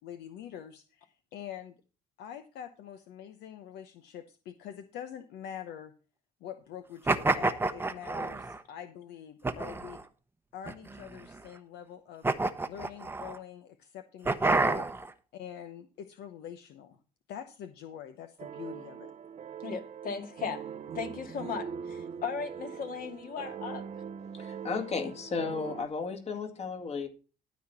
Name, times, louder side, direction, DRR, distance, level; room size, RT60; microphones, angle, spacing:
voice 1, 0.0-1.8 2.2-5.9 6.4-10.0 10.5-12.3 12.7-14.9 15.3-17.0 17.3-19.1, left 9 dB, 80° left, 0.9 m, -45 dB
sound 1, 7.1-8.6 9.4-10.0 10.7-11.4 12.2-13.4 14.3-15.1, right 3 dB, 15° right, 0.8 m, -29 dB
sound 2, 18.4-25.9, right 7 dB, 40° right, 0.7 m, -42 dB
voice 2, 19.6-23.9, left 6 dB, 55° left, 2.1 m, -37 dB
voice 3, 24.3-27.1, left 5 dB, 40° left, 2.0 m, -34 dB
12.5 x 4.3 x 7.1 m
cardioid pair, 110°, 17 cm